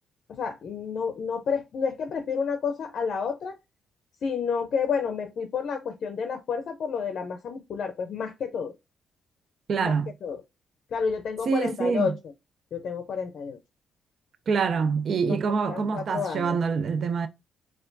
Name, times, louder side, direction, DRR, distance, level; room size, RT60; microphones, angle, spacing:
voice 1, 0.3-3.5 4.2-8.7 9.8-9.9 10.2-10.4 10.9-12.1 12.7-13.6 15.3-15.4 15.6-16.5, left 6 dB, 60° left, 0.5 m, -30 dB
voice 2, 9.7-10.1 11.4-12.2 14.5-17.3, right 5 dB, 55° right, 0.4 m, -25 dB
4.3 x 2.4 x 2.6 m
cardioid pair, 90°, 0 cm